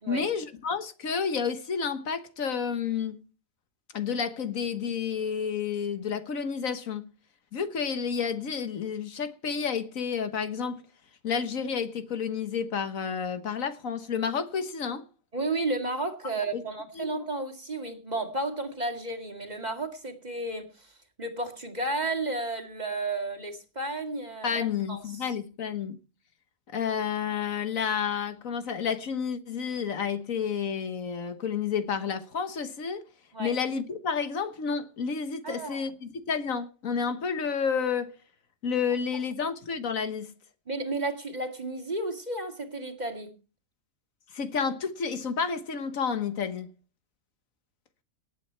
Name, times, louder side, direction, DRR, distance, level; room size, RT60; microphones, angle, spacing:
voice 1, 0.1-3.2 3.9-7.1 7.5-10.8 11.2-15.0 16.5-16.6 16.9-17.1 24.4-26.0 26.7-33.0 33.4-38.1 38.6-40.3 44.3-46.7, left 6 dB, 75° left, 1.6 m, -30 dB
voice 2, 15.3-20.9 21.2-25.4 33.3-33.5 35.4-35.8 40.7-43.3, right 2 dB, 30° right, 2.2 m, -33 dB
18.5 x 8.7 x 4.5 m
omnidirectional pair, 1.4 m